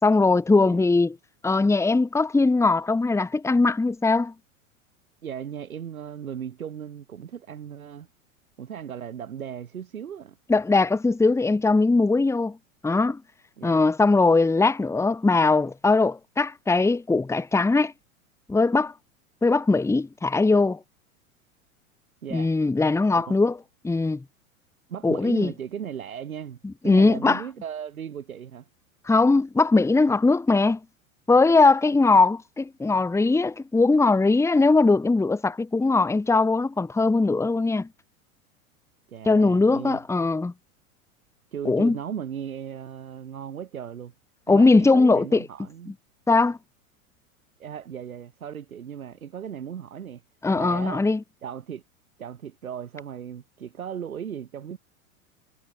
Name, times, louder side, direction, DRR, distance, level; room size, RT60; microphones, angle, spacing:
voice 1, 0.0-1.2 1.4-4.3 10.5-12.6 12.8-13.2 13.6-17.9 18.5-18.9 19.4-20.8 22.3-23.6 23.8-24.2 25.0-25.5 26.8-27.4 29.1-30.8 31.3-37.9 39.2-40.5 41.6-41.9 44.5-45.4 46.3-46.6 50.4-51.2, left 3 dB, 5° left, 1.4 m, -20 dB
voice 2, 5.2-8.1 8.6-10.4 13.6-13.8 22.2-22.5 23.1-23.4 24.9-26.6 26.8-28.7 39.1-40.0 41.5-44.1 44.5-45.9 47.6-50.2 50.5-51.1 51.4-51.8 52.2-54.8, right 8 dB, 80° right, 2.3 m, -36 dB
hypercardioid pair, 95°, 41 cm